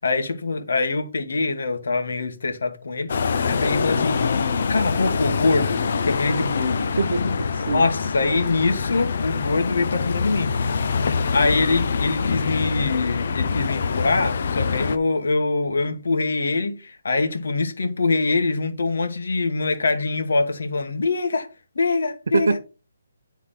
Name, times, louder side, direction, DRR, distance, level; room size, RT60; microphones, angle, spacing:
voice 1, 0.0-4.2 4.7-6.9 7.7-10.9 11.3-21.5 21.7-22.6, left 3 dB, 70° left, 1.5 m, -24 dB
sound 1, 3.1-15.0, left 5 dB, 45° left, 0.6 m, -24 dB
voice 2, 7.0-7.8 22.3-22.6, right 4 dB, 65° right, 0.7 m, -23 dB
9.9 x 3.6 x 3.8 m
hypercardioid pair, 175°, 0 cm